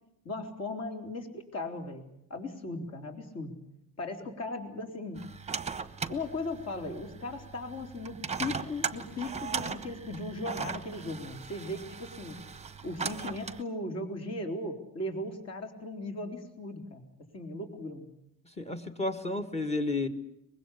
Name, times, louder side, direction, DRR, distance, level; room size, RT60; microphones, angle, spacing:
voice 1, 0.2-3.5 4.0-5.2 6.1-12.4 12.8-17.1 17.3-18.1, left 2 dB, 45° left, 4 dB, 4.2 m, -37 dB
sound 1, 5.2-13.6, right 6 dB, 20° right, 1.0 m, -38 dB
voice 2, 18.6-20.1, left 2 dB, 20° left, 6 dB, 1.8 m, -31 dB
24.0 x 21.0 x 8.5 m, 0.77 s
cardioid pair, 140°, 36 cm